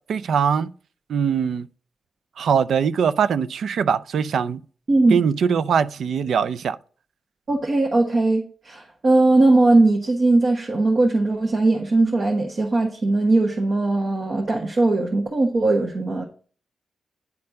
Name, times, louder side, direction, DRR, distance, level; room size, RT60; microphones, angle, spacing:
voice 1, 0.1-0.7 1.1-1.7 2.4-4.6 5.1-6.8, right 7 dB, 80° right, 0.4 m, -21 dB
voice 2, 4.9-5.2 7.5-16.2, right 2 dB, 50° right, 1.3 m, -19 dB
9.5 x 4.3 x 5.3 m
cardioid pair, 85°, 0 cm